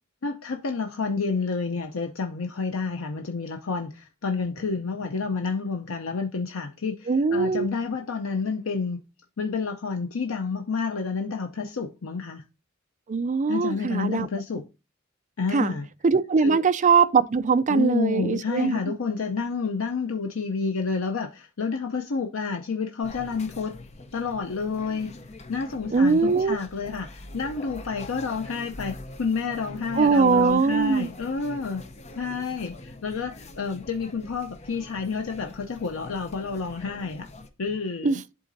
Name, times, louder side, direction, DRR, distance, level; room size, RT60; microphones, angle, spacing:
voice 1, 0.2-9.0 9.4-12.4 13.5-14.6 15.4-15.9 16.4-16.6 17.7-23.8 24.1-25.1 25.5-31.8 32.2-37.3 37.6-38.2, left 4 dB, 80° left, 0.7 m, -29 dB
voice 2, 7.1-7.7 13.1-14.3 15.5-15.8 16.0-18.8 25.9-26.6 30.0-31.1 38.0-38.2, right 5 dB, 35° right, 0.4 m, -21 dB
sound 1, 23.0-37.5, left 2 dB, 30° left, 0.7 m, -44 dB
11.5 x 3.8 x 2.6 m
head